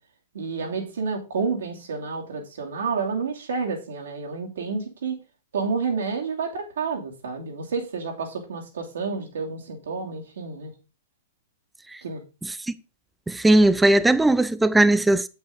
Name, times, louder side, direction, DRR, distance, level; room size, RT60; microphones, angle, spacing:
voice 1, 0.3-5.2 5.5-10.7 12.0-12.2, right 4 dB, 65° right, 2.6 m, -29 dB
voice 2, 13.3-15.3, right 1 dB, 5° right, 0.5 m, -18 dB
8.3 x 8.1 x 3.8 m
figure-of-eight pair, 105°, 0 cm